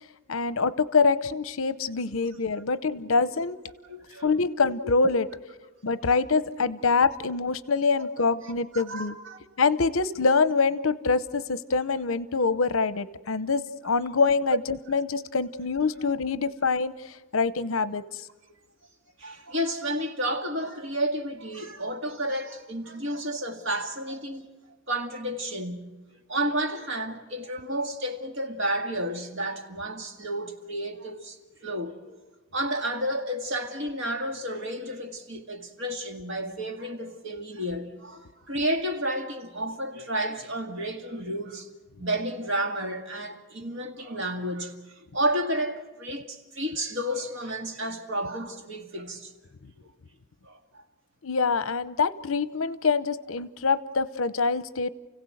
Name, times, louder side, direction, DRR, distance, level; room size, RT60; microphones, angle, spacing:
voice 1, 0.3-3.6 4.2-5.3 5.8-9.1 9.6-16.9 17.3-18.0 51.2-54.9, left 4 dB, 75° left, 0.8 m, -25 dB
voice 2, 3.9-4.3 8.4-9.4 19.2-24.5 24.9-26.0 26.3-32.2 32.5-41.7 42.0-49.3 50.4-50.8, right 1 dB, 60° right, 2.1 m, -31 dB
29.5 x 16.5 x 7.9 m
head